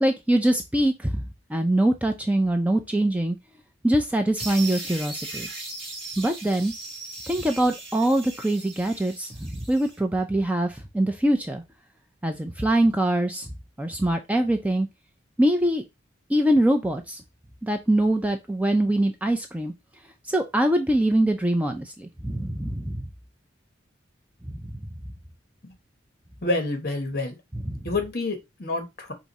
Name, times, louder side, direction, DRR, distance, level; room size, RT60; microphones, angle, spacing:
voice 1, 0.0-1.2 1.5-3.4 3.8-5.5 6.2-6.7 7.3-11.6 12.2-13.5 13.8-14.9 15.4-15.8 16.3-17.2 17.6-19.7 20.3-23.0 27.5-27.8, right 1 dB, 5° right, 0.4 m, -23 dB
sound 1, 4.4-10.0, right 2 dB, 25° right, 1.5 m, -38 dB
voice 2, 26.4-27.4 27.8-29.1, left 2 dB, 50° left, 1.2 m, -28 dB
4.8 x 2.6 x 4.1 m
head